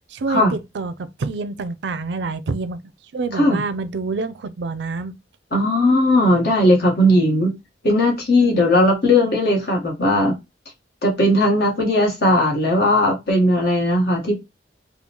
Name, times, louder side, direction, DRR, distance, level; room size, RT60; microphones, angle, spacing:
voice 1, 0.1-2.8 3.1-5.2 8.4-8.7, right 3 dB, 70° right, 0.4 m, -27 dB
voice 2, 5.5-7.5 7.8-10.3 11.0-14.4, left 1 dB, 60° left, 1.3 m, -17 dB
3.7 x 2.3 x 2.9 m
head